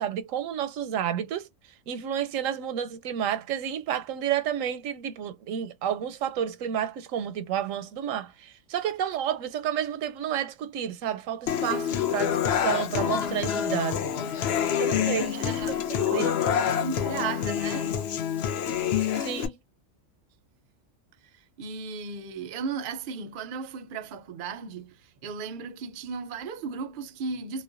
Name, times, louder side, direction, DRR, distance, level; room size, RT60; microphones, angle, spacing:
voice 1, 0.0-1.5 1.9-14.0 14.8-15.3 16.1-16.3 19.1-19.6, right 9 dB, 85° right, 1.0 m, -30 dB
Human voice / Acoustic guitar, 11.5-19.5, left 9 dB, 65° left, 0.7 m, -27 dB
voice 2, 15.0-15.8 16.1-17.9 21.6-27.6, right 5 dB, 60° right, 0.5 m, -36 dB
2.4 x 2.1 x 2.4 m
omnidirectional pair, 1.3 m